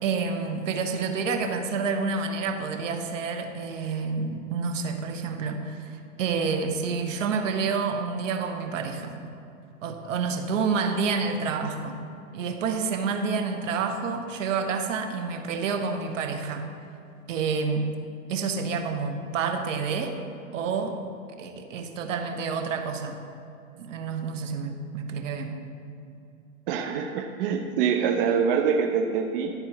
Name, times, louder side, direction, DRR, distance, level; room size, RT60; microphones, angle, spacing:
voice 1, 0.0-9.2 9.8-12.0 12.3-16.7 17.3-17.9 18.3-20.2 20.5-21.0 21.4-23.2 23.8-25.6, right 5 dB, 65° right, 5 dB, 1.2 m, -29 dB
voice 2, 26.7-29.5, right 6 dB, 40° right, 4 dB, 0.6 m, -25 dB
12.0 x 4.3 x 7.0 m, 2.7 s
hypercardioid pair, 135°, 41 cm